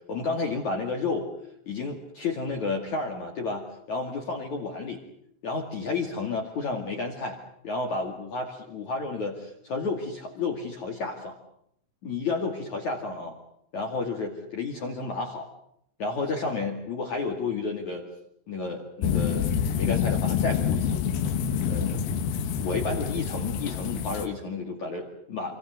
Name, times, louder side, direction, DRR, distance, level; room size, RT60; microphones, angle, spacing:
voice 1, 0.1-1.3 1.7-5.0 5.4-7.4 7.6-11.3 12.0-13.4 13.7-15.5 16.0-18.0 18.5-19.5 19.8-21.1 21.7-22.3 22.5-25.6, left 3 dB, 45° left, 1 dB, 3.1 m, -31 dB
sound 1, 19.0-24.3, left 7 dB, 65° left, 2.7 m, -27 dB
26.5 x 26.5 x 6.5 m, 0.71 s
omnidirectional pair, 5.6 m